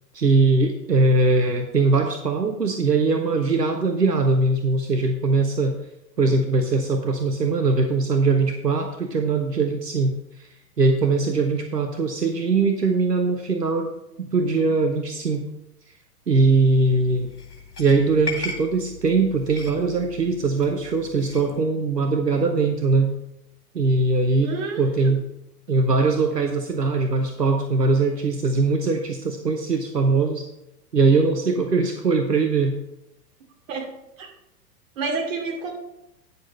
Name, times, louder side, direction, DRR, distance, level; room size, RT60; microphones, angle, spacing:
voice 1, 0.1-5.8 6.2-10.1 10.4-10.5 10.8-13.9 14.2-15.5 16.3-17.3 17.8-23.1 23.7-25.2 25.7-30.5 30.9-32.7, right 3 dB, 90° right, 5 dB, 0.9 m, -21 dB
sound 1, 16.4-21.6, left 3 dB, 65° left, 2.1 m, -38 dB
voice 2, 24.4-25.1 33.7-33.9 34.2-34.3 35.0-35.7, right 4 dB, 55° right, 0 dB, 2.6 m, -29 dB
9.5 x 6.8 x 4.2 m, 0.85 s
figure-of-eight pair, 100°, 47 cm